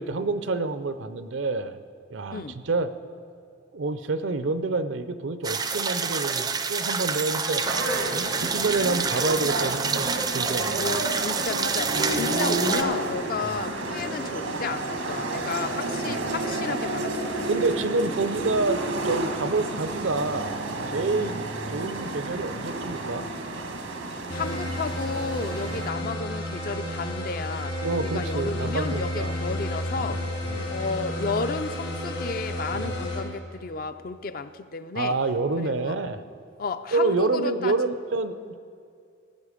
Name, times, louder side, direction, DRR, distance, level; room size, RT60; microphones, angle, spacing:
voice 1, 0.0-1.8 2.1-2.9 3.7-7.6 8.1-11.0 13.4-13.6 16.1-16.2 17.5-20.6 20.9-21.4 21.7-23.3 25.7-25.8 27.8-29.3 30.0-30.7 32.7-33.0 34.9-36.2 36.9-38.6, right 3 dB, 75° right, 11 dB, 0.6 m, -28 dB
sound 1, 5.4-12.8, right 5 dB, 20° right, 0.4 m, -28 dB
voice 2, 6.1-6.4 7.6-7.7 8.2-8.4 10.8-17.4 21.2-21.4 24.1-30.2 30.7-35.2 35.6-35.9 36.6-37.7, left 4 dB, 45° left, 11 dB, 0.4 m, -33 dB
sound 2, 7.6-25.9, right 2 dB, 90° right, 1.4 m, -31 dB
sound 3, 24.3-33.2, left 1 dB, 70° left, 3.3 m, -31 dB
17.5 x 8.9 x 5.0 m, 2.3 s
head